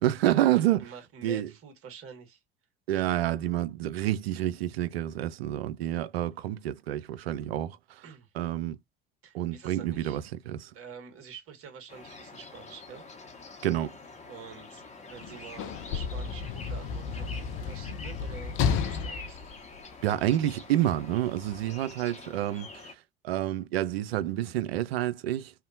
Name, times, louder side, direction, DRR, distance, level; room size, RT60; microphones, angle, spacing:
voice 1, 0.0-0.9 1.2-1.5 2.9-8.0 8.4-8.8 9.3-10.7 13.6-13.9 20.0-22.7 23.2-25.5, right 13 dB, 80° right, 0.5 m, -28 dB
voice 2, 0.8-2.4 8.0-8.3 9.2-10.2 10.7-13.1 14.3-19.4, right 6 dB, 45° right, 1.4 m, -47 dB
sound 1, 11.9-22.9, left 3 dB, 25° left, 0.8 m, -46 dB
Sliding door / Slam, 15.1-20.5 21.4-21.6, left 6 dB, 45° left, 0.5 m, -32 dB
2.8 x 2.1 x 2.5 m
figure-of-eight pair, 65°, 30 cm